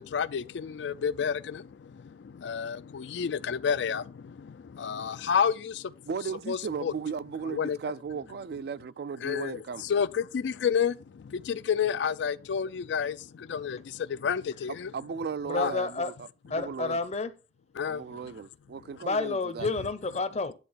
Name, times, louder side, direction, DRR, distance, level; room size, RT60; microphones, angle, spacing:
voice 1, 0.0-5.9 6.5-6.9 7.4-7.8 9.2-14.9 15.6-15.7 17.8-18.3, left 7 dB, 75° left, 0.4 m, -30 dB
voice 2, 6.1-9.8 14.9-16.3 16.5-17.0 17.8-19.7, right 6 dB, 60° right, 0.3 m, -36 dB
voice 3, 15.5-16.1 16.5-17.3 19.0-20.5, left 3 dB, 35° left, 0.6 m, -30 dB
9.8 x 3.3 x 5.5 m
head